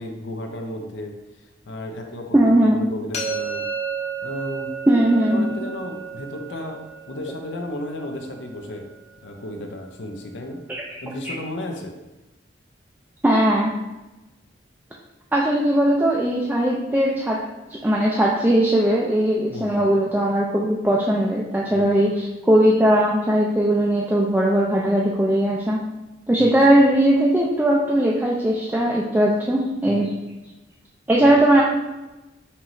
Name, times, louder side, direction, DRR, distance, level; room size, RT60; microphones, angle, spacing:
voice 1, 0.0-3.7 4.2-4.7 5.3-8.9 9.2-10.6 11.0-12.0 19.5-19.9 21.7-21.9 26.4-26.5 29.8-30.0 31.3-31.4, left 1 dB, 85° left, 3 dB, 0.6 m, -34 dB
voice 2, 2.3-2.8 4.9-5.5 10.7-10.8 13.2-13.7 15.3-17.4 17.7-25.8 26.3-30.1 31.1-31.6, right 1 dB, 10° right, -4 dB, 0.3 m, -19 dB
sound 1, 3.1-9.0, right 5 dB, 35° left, 0.8 m, -33 dB
5.6 x 3.0 x 2.6 m, 1.1 s
head